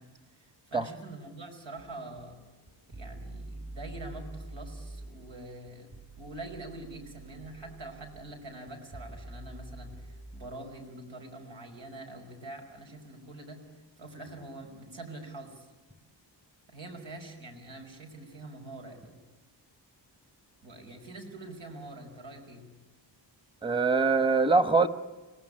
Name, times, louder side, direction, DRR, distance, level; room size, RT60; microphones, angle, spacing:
voice 1, 0.0-2.4 2.9-13.6 14.0-15.7 16.7-19.1 20.6-22.7, right 2 dB, 85° right, 3 dB, 5.3 m, -45 dB
sound 1, 1.8-10.5, right 2 dB, 55° right, 5.9 m, -46 dB
voice 2, 23.6-24.9, right 4 dB, 10° right, 12 dB, 1.1 m, -23 dB
26.0 x 19.0 x 9.8 m, 1.2 s
wide cardioid pair, 140°, 43 cm